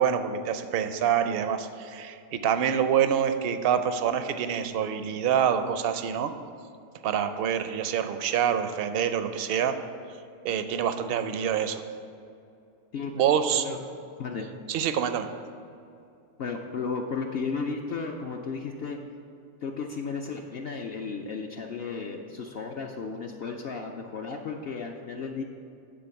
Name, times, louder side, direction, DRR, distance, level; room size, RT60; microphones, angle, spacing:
voice 1, 0.0-6.3 7.0-9.8 10.4-11.8 13.1-13.7 14.7-15.3, right 8 dB, 65° right, 9 dB, 0.6 m, -26 dB
voice 2, 16.4-19.0 19.6-25.4, left 5 dB, 60° left, 2 dB, 0.7 m, -34 dB
9.7 x 3.8 x 7.0 m, 2.6 s
omnidirectional pair, 1.4 m